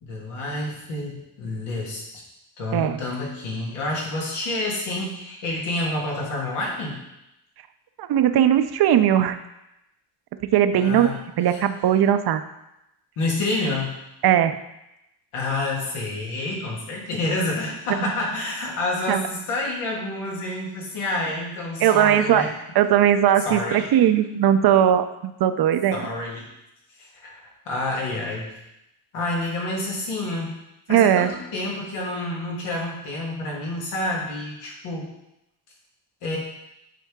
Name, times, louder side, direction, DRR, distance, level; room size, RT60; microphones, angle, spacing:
voice 1, 0.0-2.2 2.6-7.0 10.7-11.2 11.5-11.6 13.2-13.9 15.3-22.5 23.5-23.9 25.9-26.5 27.0-27.3 27.7-28.5 29.1-30.6 30.9-35.1 36.2-36.4, left 2 dB, 90° left, -3 dB, 1.8 m, -28 dB
voice 2, 8.0-9.4 10.5-11.1 11.4-12.4 14.2-14.6 19.1-19.2 21.8-22.5 22.7-26.1 30.9-31.3, right 10 dB, 50° right, 10 dB, 0.6 m, -19 dB
8.4 x 3.6 x 3.6 m, 0.88 s
cardioid pair, 80°, 49 cm